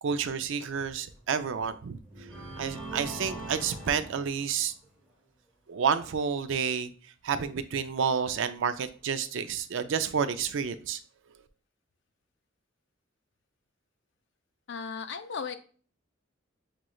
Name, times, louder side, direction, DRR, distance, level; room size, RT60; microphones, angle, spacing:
voice 1, 0.0-2.0 2.6-4.7 5.7-6.9 7.2-11.0, right 6 dB, 65° right, 0.4 m, -30 dB
sound 1, 1.2-1.4 2.1-4.9, right 2 dB, 5° right, 1.0 m, -41 dB
voice 2, 14.7-15.6, left 6 dB, 60° left, 0.4 m, -36 dB
5.9 x 3.0 x 2.3 m
head